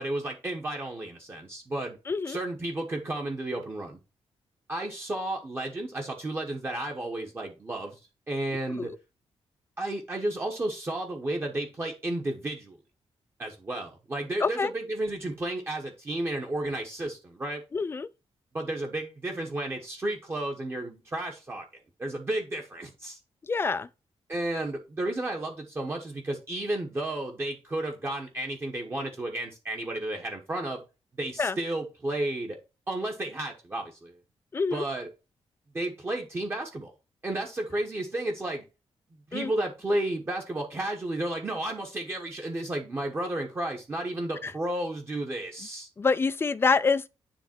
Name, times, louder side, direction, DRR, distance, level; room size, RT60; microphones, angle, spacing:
voice 1, 0.0-2.0 2.3-4.0 4.7-8.0 8.3-8.9 9.8-12.8 13.4-17.6 18.5-21.7 22.0-23.2 24.3-30.8 31.2-32.6 32.9-34.1 34.7-35.1 35.7-36.9 37.2-38.6 39.3-45.9, right 1 dB, 25° right, 1.1 m, -32 dB
voice 2, 2.1-2.4 8.7-9.0 14.4-14.7 17.7-18.1 23.4-23.9 31.4-31.6 34.5-34.9 39.3-39.5 44.4-44.5 46.0-47.1, left 4 dB, 20° left, 0.4 m, -26 dB
10.0 x 3.4 x 4.4 m
wide cardioid pair, 180°, 10 cm